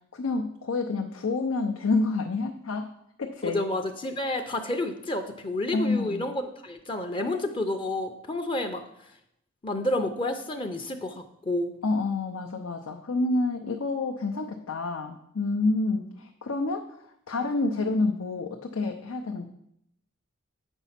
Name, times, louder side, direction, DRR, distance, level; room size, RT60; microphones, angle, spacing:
voice 1, 0.1-2.9 3.2-3.6 5.7-6.3 11.8-16.9 17.3-19.5, left 3 dB, 85° left, 3 dB, 0.6 m, -28 dB
voice 2, 3.4-8.8 9.6-11.7, left 1 dB, 25° left, 6 dB, 0.6 m, -30 dB
8.1 x 5.4 x 5.7 m, 0.76 s
head